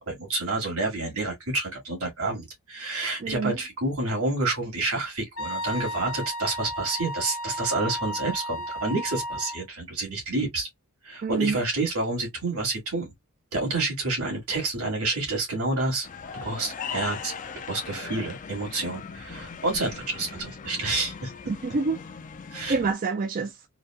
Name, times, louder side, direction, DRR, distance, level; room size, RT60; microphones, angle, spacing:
voice 1, 0.1-10.7 11.0-13.1 13.5-16.1 16.3-17.3 17.7-21.3 22.5-22.7, right 2 dB, 85° right, 1.9 m, -29 dB
voice 2, 3.2-3.6 11.2-11.6 21.5-22.0 22.7-23.7, right 4 dB, 40° right, 0.4 m, -27 dB
Wind instrument woodwind instrument, 5.4-9.6, equal, 70° left, 0.8 m, -34 dB
sound 1, 16.0-22.9, left 6 dB, 35° left, 0.4 m, -39 dB
3.9 x 2.1 x 2.4 m
head